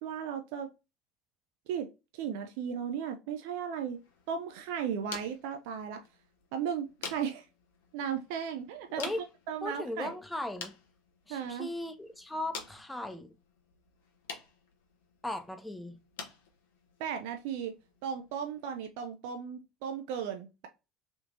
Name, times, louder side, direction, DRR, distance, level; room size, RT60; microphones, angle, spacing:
voice 1, 0.0-0.7 1.7-6.0 6.5-7.5 7.9-9.0 9.5-10.2 11.3-11.7 17.0-17.7 18.0-20.7, right 8 dB, 65° right, 0.4 m, -36 dB
sound 1, 3.9-18.9, left 5 dB, 70° left, 0.7 m, -49 dB
voice 2, 9.6-10.7 11.3-13.3 15.2-16.0, left 1 dB, 10° left, 0.7 m, -37 dB
3.5 x 2.7 x 2.6 m
figure-of-eight pair, 65°, 0 cm